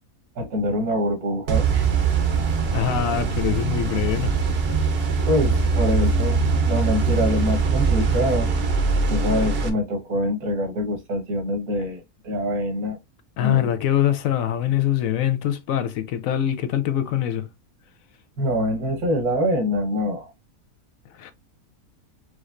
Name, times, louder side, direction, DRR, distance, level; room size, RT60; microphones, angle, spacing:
voice 1, 0.4-1.9 5.3-8.5 9.1-13.0 13.4-13.6 18.4-20.3, left 1 dB, 80° right, 1.7 m, -25 dB
sound 1, 1.5-9.7, right 4 dB, 50° right, 0.9 m, -22 dB
voice 2, 2.7-4.4 13.4-17.5 21.1-21.3, left 11 dB, 70° left, 1.0 m, -23 dB
4.9 x 3.1 x 2.5 m
omnidirectional pair, 1.6 m